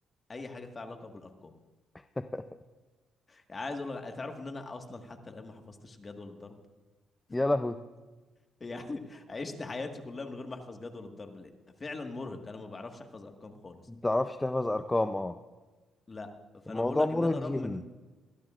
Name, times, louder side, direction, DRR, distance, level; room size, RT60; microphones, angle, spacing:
voice 1, 0.3-1.5 3.3-6.6 7.3-7.4 8.6-11.5 11.8-13.8 16.1-16.3 16.6-17.8, left 3 dB, 30° left, 4 dB, 1.6 m, -41 dB
voice 2, 7.3-7.8 14.0-15.4 16.7-17.8, left 2 dB, 15° left, 10 dB, 0.5 m, -29 dB
21.5 x 13.5 x 2.5 m, 1.3 s
cardioid pair, 90°, 0 cm